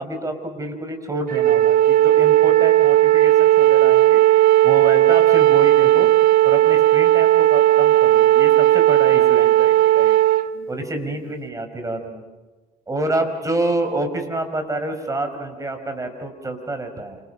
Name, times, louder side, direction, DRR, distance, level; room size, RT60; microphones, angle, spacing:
voice 1, 0.0-4.2 4.6-6.1 6.4-10.2 10.7-12.2 12.9-17.2, right 2 dB, 20° right, 6 dB, 5.3 m, -28 dB
Wind instrument woodwind instrument, 1.3-10.5, right 14 dB, 60° right, 1.4 m, -15 dB
28.5 x 28.0 x 5.7 m, 1.3 s
cardioid pair, 110°, 17 cm